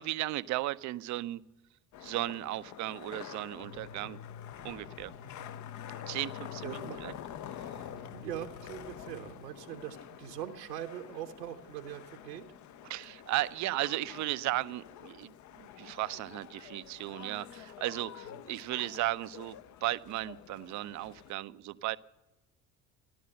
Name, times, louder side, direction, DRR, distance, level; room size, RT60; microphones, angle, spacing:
voice 1, 0.0-1.4 2.0-4.2 4.6-5.1 6.1-7.2 7.5-7.9 12.8-22.0, right 16 dB, 35° right, 16 dB, 0.5 m, -35 dB
sound 1, 1.9-21.3, left 11 dB, 35° left, 0.6 m, -48 dB
sound 2, 3.6-9.3, left 6 dB, 65° left, 2.7 m, -49 dB
voice 2, 6.6-7.0 8.1-12.5 18.3-18.4, right 11 dB, 75° right, 3 dB, 1.2 m, -42 dB
14.0 x 11.5 x 7.7 m, 0.99 s
figure-of-eight pair, 55°, 50 cm